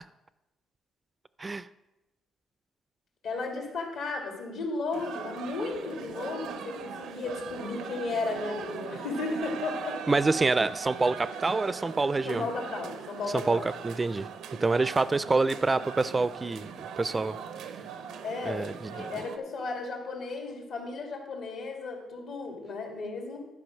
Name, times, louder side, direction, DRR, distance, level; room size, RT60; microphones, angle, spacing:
voice 1, 3.2-10.1 12.2-13.7 18.2-23.4, left 3 dB, 80° left, 1 dB, 2.2 m, -34 dB
sound 1, 4.9-19.4, right 7 dB, 85° right, 0.6 m, -40 dB
voice 2, 10.1-12.4 13.3-14.3 14.6-17.4 18.5-18.9, right 3 dB, 25° right, 16 dB, 0.3 m, -27 dB
11.0 x 4.8 x 6.3 m, 1.0 s
cardioid pair, 90°, 0 cm